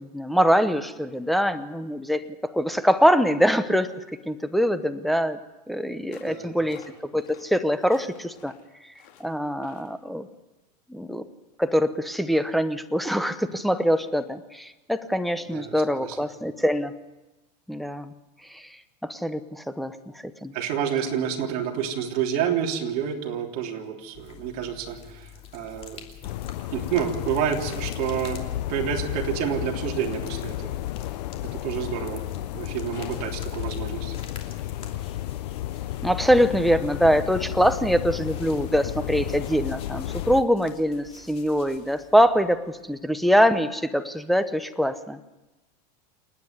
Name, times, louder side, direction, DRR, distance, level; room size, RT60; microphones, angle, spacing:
voice 1, 0.0-2.2 2.5-3.9 4.3-5.4 5.7-6.8 7.1-8.5 9.2-10.3 10.9-11.2 11.6-16.9 17.7-18.1 18.5-20.6 36.0-45.3, equal, ahead, 9 dB, 0.8 m, -23 dB
sound 1, 6.1-6.4 6.7-7.4 7.8-8.6 8.9-9.3 9.6-9.9, left 9 dB, 55° left, 4.8 m, -52 dB
voice 2, 6.2-6.6 15.5-16.2 20.5-26.1 26.7-28.4 28.7-30.8 31.5-32.2 32.5-34.2, right 8 dB, 45° right, 1 dB, 3.4 m, -29 dB
sound 2, 24.1-43.0, left 8 dB, 30° left, 2.8 m, -47 dB
sound 3, 26.2-40.4, left 14 dB, 75° left, 0.7 m, -32 dB
28.5 x 9.6 x 9.4 m, 1.1 s
supercardioid pair, 145°, 21 cm